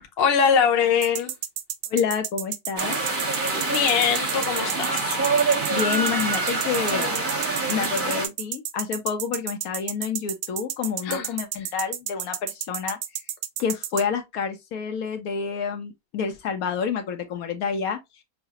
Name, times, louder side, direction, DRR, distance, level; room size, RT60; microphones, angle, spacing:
voice 1, 0.2-1.3 3.5-5.2 11.0-11.3, left 7 dB, 50° left, 0.9 m, -22 dB
sound 1, 1.0-14.0, right 10 dB, 70° right, 0.9 m, -31 dB
voice 2, 1.9-3.0 5.7-7.2 7.7-13.0 13.6-18.0, left 6 dB, 75° left, 1.1 m, -28 dB
sound 2, 2.8-8.3, right 3 dB, 35° right, 1.2 m, -25 dB
5.6 x 2.1 x 2.8 m
omnidirectional pair, 1.6 m